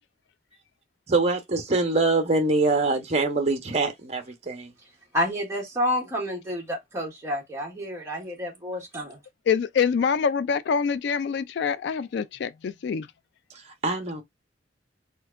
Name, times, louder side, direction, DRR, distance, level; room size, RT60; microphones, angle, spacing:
voice 1, 1.1-4.7 13.8-14.2, right 3 dB, 35° right, 1.0 m, -24 dB
voice 2, 5.1-9.2, equal, 15° right, 1.6 m, -29 dB
voice 3, 9.5-13.1, left 6 dB, 65° left, 0.3 m, -25 dB
4.2 x 2.8 x 2.5 m
head